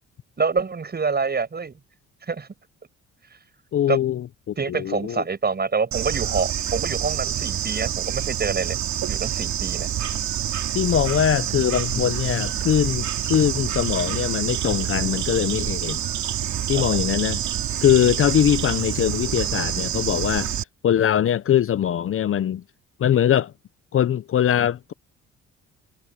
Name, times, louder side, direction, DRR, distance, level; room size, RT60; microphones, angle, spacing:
voice 1, 0.4-1.7 2.3-2.5 3.9-4.0 4.6-8.8 9.1-9.9 16.7-16.8, right 5 dB, 35° right, 6.5 m, -26 dB
voice 2, 3.7-5.2 10.7-16.0 16.7-17.4 17.8-22.6 23.0-23.5 23.9-24.9, left 10 dB, 45° left, 0.6 m, -22 dB
Bird / Insect, 5.9-20.6, right 10 dB, 70° right, 2.8 m, -27 dB
cardioid pair, 90°, 30 cm